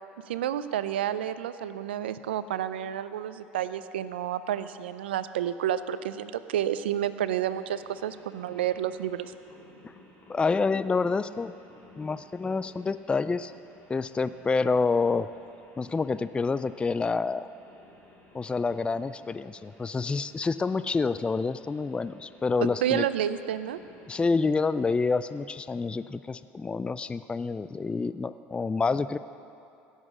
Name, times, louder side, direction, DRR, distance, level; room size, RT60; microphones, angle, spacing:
voice 1, 0.3-9.3 22.8-23.8, right 10 dB, 90° right, 13 dB, 0.5 m, -30 dB
sound 1, 7.6-25.3, left 2 dB, 40° left, 3.4 m, -56 dB
voice 2, 10.3-11.5 12.0-13.5 13.9-15.3 15.8-17.5 18.3-23.0 24.1-29.2, left 4 dB, 20° left, 14 dB, 0.4 m, -28 dB
17.0 x 7.3 x 6.2 m, 2.7 s
hypercardioid pair, 80°, 6 cm